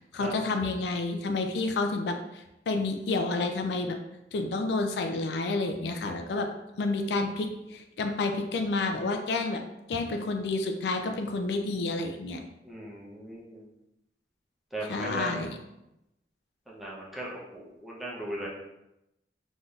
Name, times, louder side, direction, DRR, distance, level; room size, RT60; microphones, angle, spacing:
voice 1, 0.1-4.0 4.3-6.5 6.8-9.6 9.9-12.4 14.9-15.6, left 3 dB, 75° left, 5 dB, 0.3 m, -30 dB
voice 2, 12.7-13.6 14.7-15.4 16.7-18.5, right 1 dB, ahead, -5 dB, 0.5 m, -38 dB
3.5 x 2.6 x 2.3 m, 0.89 s
head